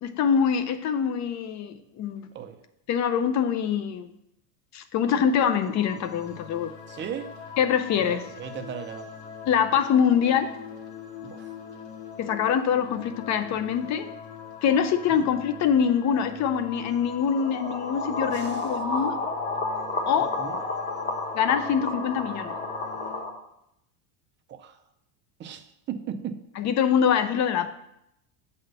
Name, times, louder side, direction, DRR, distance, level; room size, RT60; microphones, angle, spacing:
voice 1, 0.0-2.3 2.9-4.1 4.7-6.7 7.6-8.3 9.5-10.5 12.2-14.1 14.6-19.2 20.1-20.4 21.3-22.5 26.6-27.7, left 7 dB, 35° left, 11 dB, 0.6 m, -24 dB
sound 1, 5.1-23.2, left 6 dB, 65° left, 1.9 m, -42 dB
voice 2, 6.9-7.3 8.0-9.1 11.2-11.6 15.1-15.2 18.3-19.0 20.4-20.6 24.5-24.8 25.4-26.4, right 8 dB, 25° right, 7 dB, 0.5 m, -37 dB
sound 2, 17.2-23.3, left 2 dB, 20° left, 1.2 m, -31 dB
7.6 x 4.2 x 6.4 m, 0.81 s
supercardioid pair, 135°, 48 cm